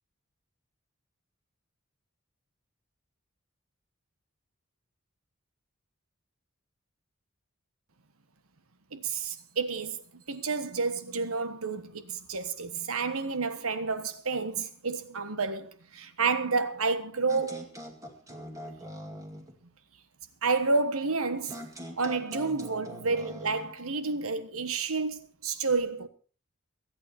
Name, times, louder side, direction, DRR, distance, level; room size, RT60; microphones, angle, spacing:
voice 1, 8.9-17.7 20.4-21.7 22.0-26.1, right 4 dB, 85° right, 1.4 m, -30 dB
sound 1, 17.3-19.5 21.5-23.7, equal, 15° right, 2.2 m, -43 dB
23.5 x 8.8 x 4.4 m
head